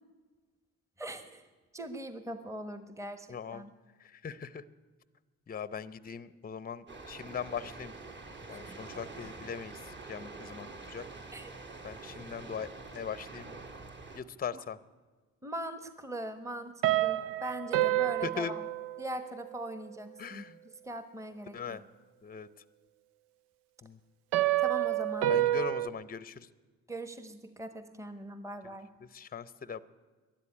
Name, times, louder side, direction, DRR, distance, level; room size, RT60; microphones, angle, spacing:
voice 1, 1.0-1.4 1.7-3.7 11.3-11.5 14.5-14.6 15.4-18.6 19.0-20.4 20.8-21.8 24.6-25.3 26.9-28.9, right 1 dB, 10° right, 10 dB, 1.2 m, -41 dB
voice 2, 3.3-3.7 4.0-4.6 5.5-7.9 8.5-11.1 11.8-13.5 14.1-14.8 18.2-18.5 20.2-20.6 21.5-21.8 22.2-22.5 23.8-24.0 25.3-26.5 28.6-29.8, left 6 dB, 25° left, 17 dB, 0.7 m, -40 dB
sound 1, 6.9-14.2, right 3 dB, 35° right, 2.0 m, -46 dB
sound 2, 16.8-19.5 24.3-25.9, right 15 dB, 85° right, 0.6 m, -28 dB
12.5 x 10.5 x 9.7 m, 1.4 s
supercardioid pair, 60°, 33 cm